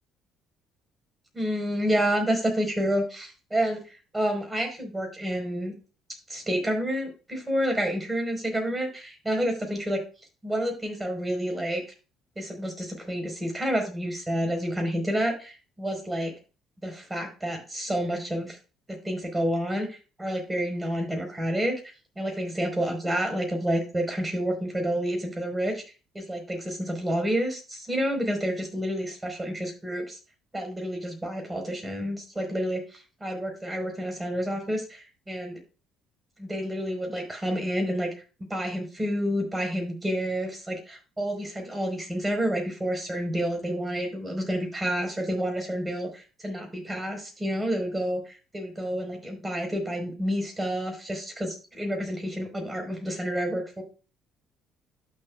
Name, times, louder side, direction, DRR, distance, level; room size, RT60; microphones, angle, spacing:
voice 1, 1.3-3.8 4.1-5.7 6.3-10.0 10.4-11.8 12.3-16.3 16.8-18.6 18.9-21.7 22.1-25.8 26.1-30.2 30.5-35.5 36.4-38.1 38.4-53.8, equal, 15° right, 3 dB, 4.8 m, -29 dB
12.0 x 6.8 x 2.5 m, 0.32 s
hypercardioid pair, 55°, 0 cm